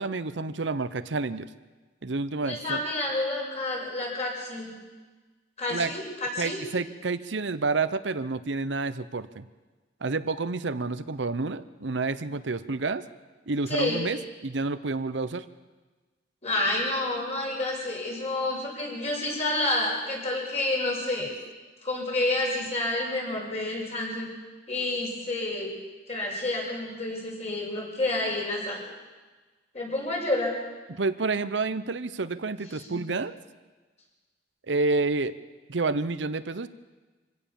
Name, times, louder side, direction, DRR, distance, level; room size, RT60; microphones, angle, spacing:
voice 1, 0.0-1.5 2.0-2.8 5.7-5.9 6.4-9.4 10.0-13.0 13.5-15.4 30.9-33.4 34.7-35.4 35.7-36.7, right 3 dB, 75° right, 13 dB, 0.8 m, -29 dB
voice 2, 2.4-4.7 5.6-6.6 13.7-14.0 16.4-21.3 21.8-24.3 24.7-25.7 26.1-28.9 29.7-30.5 32.7-33.0, left 2 dB, 40° left, -2 dB, 6.7 m, -29 dB
25.0 x 16.5 x 7.1 m, 1.3 s
head